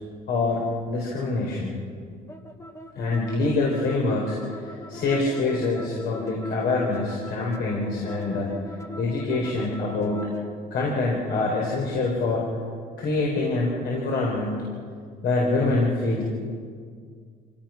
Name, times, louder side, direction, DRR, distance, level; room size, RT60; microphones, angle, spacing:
voice 1, 0.3-1.8 2.9-8.5 9.0-10.3 10.7-12.4 13.0-14.7 15.2-16.2, left 3 dB, 70° left, -3 dB, 4.7 m, -25 dB
sound 1, 2.3-10.5, equal, 15° left, 1.5 m, -40 dB
26.0 x 17.0 x 6.0 m, 2.1 s
cardioid pair, 110°, 17 cm